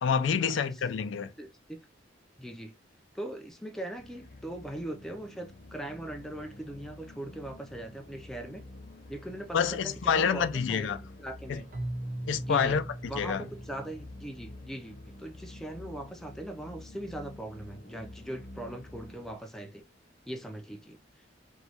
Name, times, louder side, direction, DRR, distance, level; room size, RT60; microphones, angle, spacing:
voice 1, 0.0-1.3 9.5-11.0 11.5-11.6 12.3-12.8 13.1-13.4, left 6 dB, 85° left, 0.4 m, -27 dB
voice 2, 1.4-1.8 2.4-2.7 3.1-8.6 9.1-11.7 12.4-12.7 13.1-19.8 20.3-21.0, right 1 dB, ahead, 0.4 m, -40 dB
sound 1, 3.9-19.4, left 1 dB, 50° left, 0.8 m, -49 dB
Keyboard (musical), 11.7-14.7, right 1 dB, 50° right, 0.6 m, -39 dB
3.0 x 2.2 x 2.7 m
head